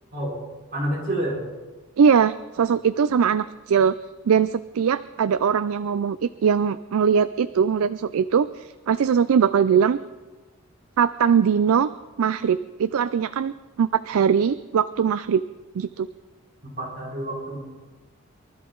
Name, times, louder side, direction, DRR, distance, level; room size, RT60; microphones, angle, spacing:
voice 1, 0.7-1.4 16.6-17.6, right 1 dB, 40° right, -5 dB, 4.9 m, -28 dB
voice 2, 2.0-3.9 4.3-10.0 11.0-11.9 12.2-13.5 13.8-15.4 15.7-16.1, right 7 dB, 75° right, 13 dB, 0.4 m, -21 dB
23.5 x 13.0 x 3.9 m, 1.2 s
head